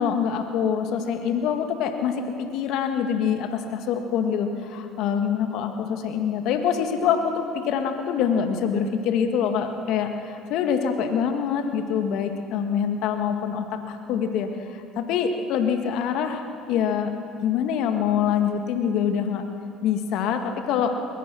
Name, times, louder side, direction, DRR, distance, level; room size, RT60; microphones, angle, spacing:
voice 1, 0.0-16.4 16.7-17.1 17.4-19.4 19.8-20.9, left 7 dB, 65° left, 6 dB, 1.9 m, -25 dB
21.5 x 21.5 x 6.2 m, 2.7 s
hypercardioid pair, 65°, 0 cm